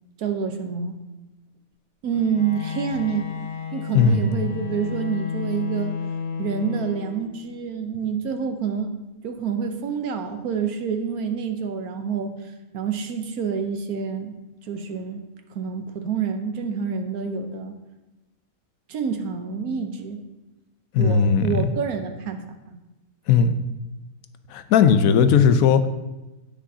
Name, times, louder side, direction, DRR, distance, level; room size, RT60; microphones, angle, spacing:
voice 1, 0.2-1.0 2.0-3.3 3.7-6.0 6.4-8.9 9.2-12.4 12.7-14.4 14.6-15.2 15.5-17.8 18.9-20.2 21.0-22.8, right 6 dB, 80° right, 7 dB, 1.3 m, -27 dB
Bowed string instrument, 2.1-7.5, left 6 dB, 50° left, 1.3 m, -32 dB
voice 2, 20.9-21.6 23.3-23.6 24.5-25.9, left 6 dB, 75° left, 10 dB, 1.1 m, -17 dB
17.0 x 6.3 x 2.8 m, 1.1 s
omnidirectional pair, 1.5 m